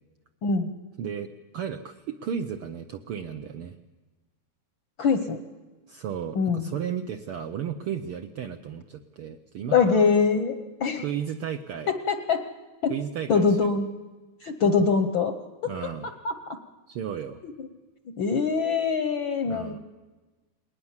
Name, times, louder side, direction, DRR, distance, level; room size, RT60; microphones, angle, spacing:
voice 1, 0.4-0.7 5.0-5.4 6.3-6.7 9.7-11.0 11.9-12.5 12.8-13.0 13.3-13.9 14.4-15.3 15.6-15.7 16.0-16.6 17.4-17.7 18.0-19.8, left 5 dB, 65° left, 8 dB, 1.2 m, -24 dB
voice 2, 1.0-3.8 5.9-10.0 11.0-11.9 12.9-13.7 15.6-16.1 16.9-17.4 19.4-19.8, right 8 dB, 75° right, 7 dB, 1.3 m, -34 dB
20.5 x 19.5 x 7.3 m, 1.2 s
omnidirectional pair, 3.4 m